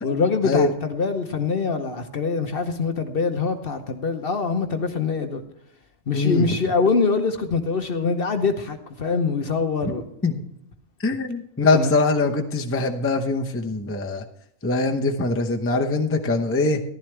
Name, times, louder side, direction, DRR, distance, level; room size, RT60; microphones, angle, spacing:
voice 1, 0.0-5.4 6.1-10.0 11.7-11.9, left 4 dB, 50° left, 7 dB, 1.0 m, -24 dB
voice 2, 6.1-6.6 10.2-10.4 11.0-14.2 14.6-16.8, left 3 dB, 15° left, 3 dB, 0.7 m, -22 dB
14.0 x 11.5 x 3.3 m, 0.71 s
omnidirectional pair, 1.4 m